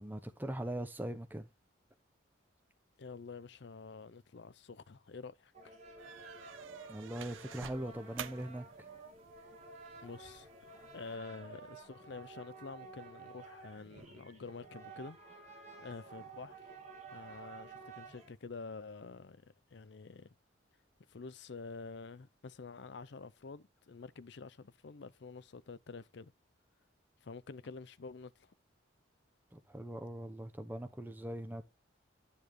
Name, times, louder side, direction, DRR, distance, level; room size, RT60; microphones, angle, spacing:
voice 1, 0.0-1.5 6.9-8.6 29.5-31.6, right 1 dB, 10° right, 0.8 m, -41 dB
voice 2, 3.0-5.7 10.0-10.5 10.9-15.2 15.8-16.7 17.1-20.4 21.1-26.3 27.2-28.5, left 4 dB, 60° left, 0.5 m, -48 dB
sound 1, 5.5-18.3, right 4 dB, 35° right, 2.7 m, -52 dB
sound 2, 6.0-11.2, right 8 dB, 80° right, 0.6 m, -51 dB
10.0 x 7.0 x 3.1 m
head